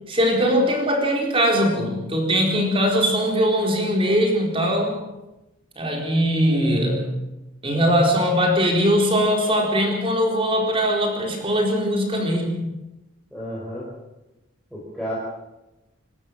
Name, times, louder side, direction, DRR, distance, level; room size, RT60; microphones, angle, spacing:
voice 1, 0.1-5.0 5.8-7.1 7.6-12.6, equal, 25° right, 1 dB, 4.3 m, -21 dB
voice 2, 13.3-13.9 14.7-15.2, equal, ahead, -7 dB, 5.1 m, -31 dB
26.5 x 13.0 x 7.6 m, 0.98 s
head